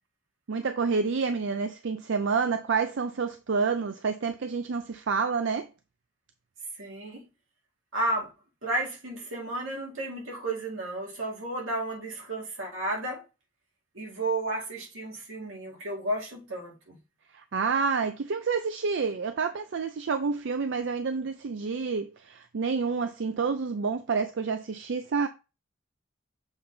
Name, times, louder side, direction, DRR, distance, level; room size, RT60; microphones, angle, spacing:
voice 1, 0.5-5.7 17.3-25.3, right 5 dB, 65° right, 0.5 m, -28 dB
voice 2, 6.8-7.2 7.9-8.3 8.6-13.2 13.9-17.0, right 1 dB, 85° right, 2.3 m, -32 dB
7.1 x 3.3 x 4.0 m
head